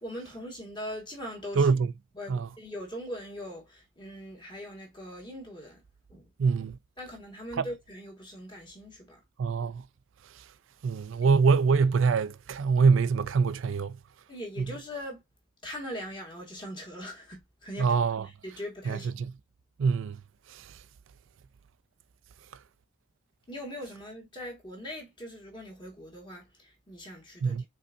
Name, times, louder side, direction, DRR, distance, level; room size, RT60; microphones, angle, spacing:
voice 1, 0.0-1.7 2.1-5.8 6.1-6.3 7.0-9.2 11.2-11.3 14.3-15.2 15.6-17.9 18.2-19.1 23.5-27.6, equal, 25° left, 1.8 m, -41 dB
voice 2, 1.6-1.9 2.3-2.5 6.4-6.8 9.4-9.8 10.8-14.0 14.6-14.7 17.8-18.3 18.9-19.3 19.8-20.2 20.5-20.6 27.4-27.6, right 5 dB, 75° right, 0.4 m, -24 dB
5.3 x 3.6 x 2.6 m
head